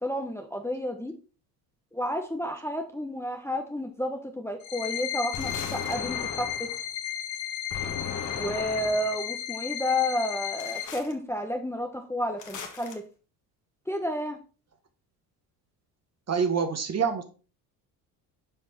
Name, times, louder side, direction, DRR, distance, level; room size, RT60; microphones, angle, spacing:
voice 1, 0.0-1.1 1.9-6.7 8.3-13.0 13.9-14.4, left 1 dB, 5° left, 4 dB, 1.0 m, -31 dB
sound 1, 4.6-10.8, left 10 dB, 75° left, 1.0 m, -34 dB
sound 2, 5.3-6.8 7.7-9.2 10.6-11.1 12.4-13.0, left 6 dB, 40° left, 1.8 m, -37 dB
voice 2, 16.3-17.2, right 6 dB, 35° right, 7 dB, 1.5 m, -26 dB
7.0 x 5.2 x 4.2 m, 0.35 s
hypercardioid pair, 65°, 47 cm